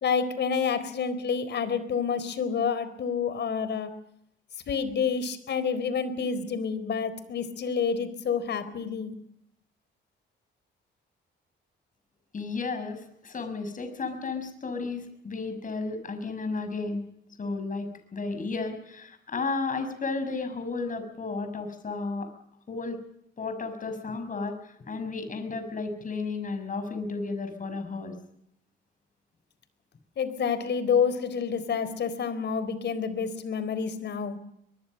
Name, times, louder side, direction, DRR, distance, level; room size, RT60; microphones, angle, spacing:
voice 1, 0.0-3.9 4.7-9.1 30.2-34.4, left 6 dB, 60° left, 13 dB, 4.1 m, -28 dB
voice 2, 12.3-17.0 17.4-22.3 22.7-23.0 23.4-24.6 24.9-28.1, left 3 dB, 40° left, 8 dB, 6.2 m, -33 dB
23.0 x 22.0 x 6.7 m, 0.74 s
cardioid pair, 90°, 20 cm